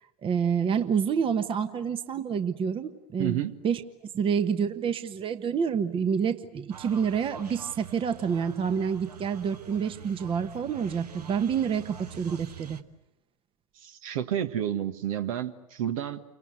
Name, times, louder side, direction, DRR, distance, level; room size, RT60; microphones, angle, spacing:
voice 1, 0.2-3.8 4.1-12.8, right 7 dB, 25° right, 10 dB, 1.3 m, -28 dB
voice 2, 3.2-3.5 13.8-16.2, right 10 dB, 60° right, 9 dB, 1.7 m, -30 dB
sound 1, 6.7-12.8, right 6 dB, 80° right, 1.3 m, -45 dB
29.5 x 24.5 x 7.9 m, 0.87 s
figure-of-eight pair, 90°, 20 cm